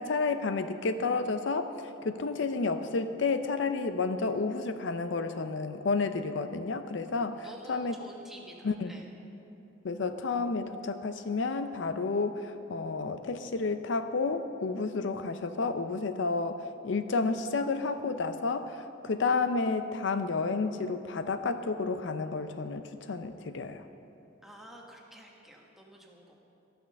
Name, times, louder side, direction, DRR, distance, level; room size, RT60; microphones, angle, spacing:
voice 1, 0.0-1.7 2.0-7.9 8.6-8.9 9.8-23.8, left 4 dB, 70° left, 9 dB, 0.5 m, -31 dB
voice 2, 7.4-9.1 24.4-26.4, equal, ahead, -1 dB, 1.2 m, -50 dB
13.0 x 9.1 x 6.5 m, 2.9 s
head